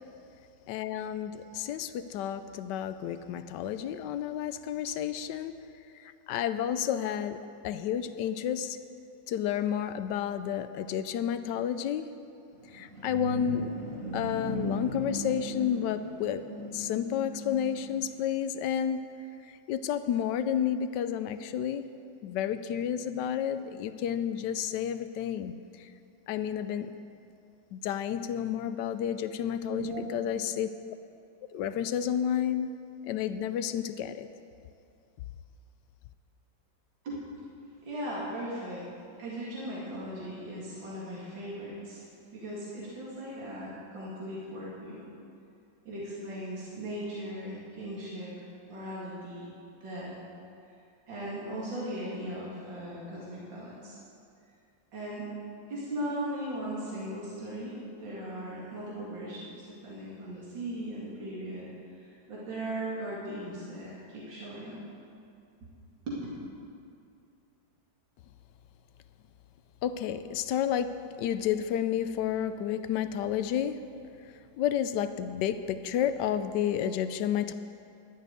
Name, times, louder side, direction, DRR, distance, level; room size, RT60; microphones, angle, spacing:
voice 1, 0.7-5.6 6.3-8.8 9.3-12.1 12.7-13.7 14.1-16.4 16.7-19.1 19.7-21.9 22.2-25.5 26.3-26.9 27.7-30.7 31.5-32.7 33.1-34.3 69.8-70.9 71.2-73.8 74.6-77.5, left 9 dB, 75° left, 11 dB, 1.1 m, -31 dB
sound 1, 12.5-18.1, right 1 dB, 50° right, 1.8 m, -38 dB
voice 2, 29.6-30.1 37.0-37.2 37.8-38.8 39.2-42.0 42.3-45.1 45.8-49.5 49.8-50.2 51.1-54.0 54.9-55.3 55.7-61.7 62.0-64.8 65.6-65.7 66.1-66.2, right 1 dB, 75° right, -7 dB, 3.0 m, -38 dB
12.0 x 6.6 x 9.2 m, 2.5 s
omnidirectional pair, 2.1 m